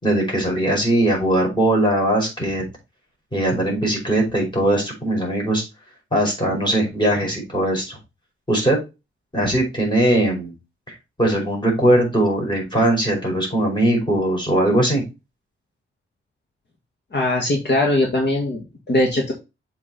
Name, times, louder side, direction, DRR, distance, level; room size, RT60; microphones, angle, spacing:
voice 1, 0.0-2.7 3.3-5.6 6.1-8.0 8.5-8.8 9.3-10.5 11.2-15.0, right 1 dB, 20° left, -1 dB, 5.2 m, -20 dB
voice 2, 17.1-19.3, left 1 dB, 55° left, 0 dB, 2.0 m, -20 dB
7.4 x 4.8 x 4.2 m, 0.26 s
wide cardioid pair, 110°, 21 cm